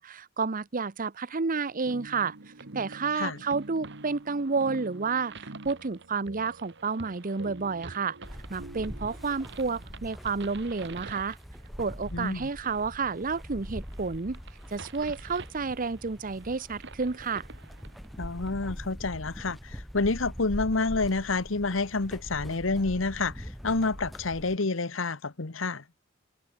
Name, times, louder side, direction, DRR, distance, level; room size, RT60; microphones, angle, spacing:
voice 1, 0.0-2.4 2.7-8.2 8.5-11.4 11.8-14.4 14.7-17.5, right 4 dB, 45° right, 0.8 m, -30 dB
sound 1, 1.8-18.5, right 4 dB, 65° right, 3.1 m, -50 dB
sound 2, 1.8-10.1, right 2 dB, 85° right, 1.6 m, -47 dB
sound 3, 8.2-24.6, equal, ahead, 1.9 m, -43 dB
voice 2, 12.1-12.5 18.2-25.8, left 3 dB, 75° left, 1.2 m, -29 dB
head